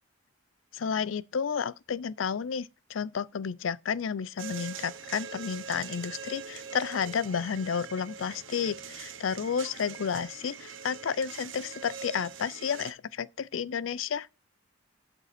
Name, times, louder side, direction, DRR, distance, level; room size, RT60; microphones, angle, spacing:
voice 1, 0.7-14.3, left 6 dB, 85° left, 0.5 m, -31 dB
sound 1, 4.4-12.9, right 6 dB, 85° right, 1.0 m, -43 dB
12.0 x 5.4 x 4.2 m
head